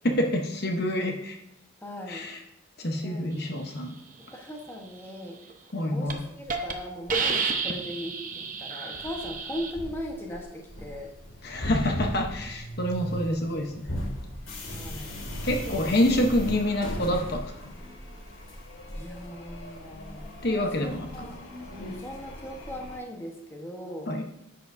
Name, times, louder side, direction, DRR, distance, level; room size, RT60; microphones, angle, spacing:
voice 1, 0.0-1.4 2.1-2.4 2.8-3.9 5.7-6.2 11.4-13.9 15.4-17.7 20.4-21.1 24.1-24.2, left 1 dB, 50° left, 3 dB, 0.9 m, -27 dB
voice 2, 1.8-2.3 3.0-3.3 4.2-5.5 5.8-11.1 14.6-15.2 15.7-15.8 18.3-18.5 18.9-20.3 20.8-21.4 21.7-24.1, equal, 10° left, 0 dB, 1.2 m, -39 dB
Hiss, 5.5-5.7 6.1-6.2 6.5-6.7 7.1-9.7, right 5 dB, 40° right, 0.9 m, -30 dB
sound 1, 8.9-23.0, equal, 80° left, 2.3 m, -38 dB
11.0 x 7.9 x 2.7 m, 0.84 s
head